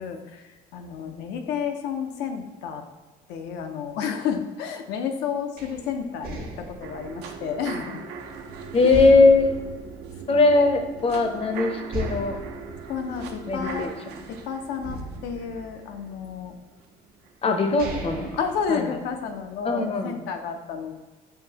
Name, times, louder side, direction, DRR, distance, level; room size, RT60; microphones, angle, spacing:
voice 1, 0.0-2.8 3.3-8.0 10.3-10.4 12.9-13.9 14.3-16.6 17.5-17.6 18.4-21.0, left 7 dB, 85° left, 6 dB, 0.6 m, -31 dB
sound 1, 5.6-8.4 8.9-10.8 11.2-11.3 11.9-14.3 14.8-16.4 17.1-17.2 17.6-19.4, right 1 dB, 65° right, 0.9 m, -37 dB
sound 2, 6.8-16.8 17.2-17.3, right 5 dB, 80° right, 0.5 m, -39 dB
voice 2, 8.7-9.7 10.3-12.4 13.5-13.9 17.4-18.3 18.7-18.9 19.6-20.2, left 3 dB, 35° left, 6 dB, 0.6 m, -20 dB
5.7 x 2.7 x 2.8 m, 1.2 s
cardioid pair, 110°, 17 cm